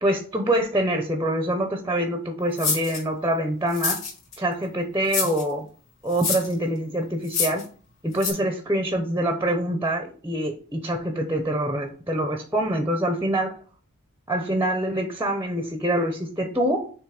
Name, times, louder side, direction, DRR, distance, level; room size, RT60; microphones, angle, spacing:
voice 1, 0.0-4.0 4.4-5.7 6.0-7.6 8.0-13.6 14.3-16.9, right 1 dB, 10° right, 5 dB, 0.8 m, -25 dB
sound 1, 2.6-3.0 3.7-4.4 5.1-5.4 6.1-6.5 7.2-7.6 8.2-8.3, left 5 dB, 65° left, 2.9 m, -26 dB
6.8 x 3.2 x 4.8 m, 0.41 s
head